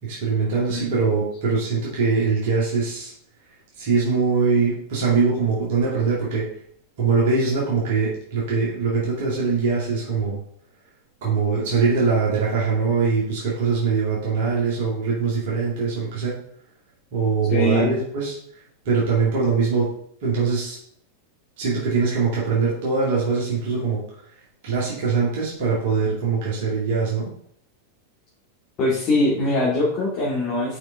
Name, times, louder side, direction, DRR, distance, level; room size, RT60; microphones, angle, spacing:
voice 1, 0.0-3.1 3.8-6.5 7.0-10.4 11.2-16.3 17.1-18.4 18.8-19.9 20.2-20.8 21.6-24.0 24.6-27.3, right 5 dB, 50° right, -6 dB, 2.2 m, -22 dB
voice 2, 17.5-17.9 28.8-30.8, left 1 dB, 35° left, -7 dB, 2.2 m, -22 dB
6.1 x 5.2 x 3.5 m, 0.66 s
figure-of-eight pair, 90°, 0 cm